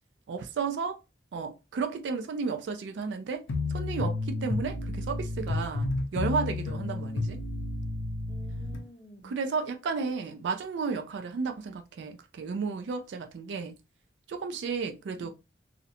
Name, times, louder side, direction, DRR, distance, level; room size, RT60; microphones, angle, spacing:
voice 1, 0.3-1.0 1.3-7.4 9.2-13.7 14.3-15.3, right 5 dB, 70° right, 0.3 m, -33 dB
sound 1, 3.5-8.8, left 2 dB, 85° left, 0.5 m, -31 dB
voice 2, 8.3-9.4 10.0-10.1 15.2-15.3, equal, 20° left, 0.4 m, -51 dB
2.5 x 2.0 x 2.8 m
head